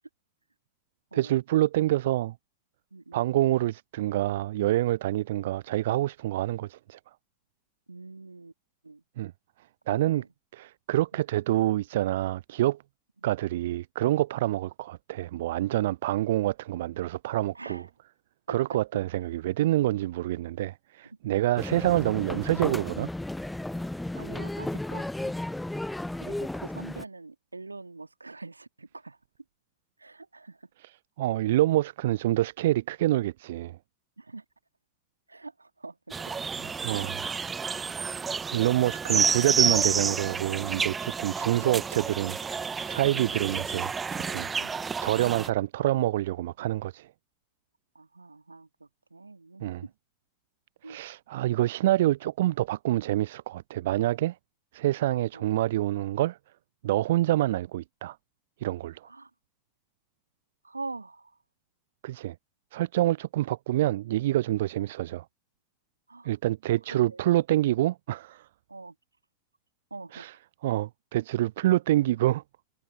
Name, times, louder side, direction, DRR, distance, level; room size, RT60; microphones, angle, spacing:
voice 1, 1.1-2.3 3.1-7.0 9.2-9.3 9.9-10.2 10.5-12.8 13.2-17.8 18.5-23.1 31.2-33.8 36.6-37.2 38.5-47.1 49.6-49.8 50.9-54.4 54.7-56.4 56.8-58.2 58.6-59.1 62.0-62.3 62.7-65.2 66.2-68.5 70.1-70.3 70.6-72.4, right 15 dB, 55° right, 0.4 m, -27 dB
voice 2, 2.9-3.3 7.9-8.5 8.8-9.0 9.9-10.3 11.1-11.2 17.5-17.9 18.5-18.8 19.6-19.8 21.0-21.2 24.1-25.3 26.2-29.2 30.0-30.7 34.2-34.4 35.3-36.1 44.6-44.8 45.8-46.4 47.9-49.9 50.8-51.0 55.1-55.5 59.0-59.3 60.6-61.4 64.8-64.9 66.1-66.3 66.9-67.3 68.7-69.0 69.9-70.3, right 3 dB, 80° right, 2.0 m, -44 dB
sound 1, 21.6-27.0, left 1 dB, 5° left, 0.6 m, -34 dB
sound 2, 36.1-45.5, right 5 dB, 15° right, 1.1 m, -30 dB
figure-of-eight pair, 90°, 0 cm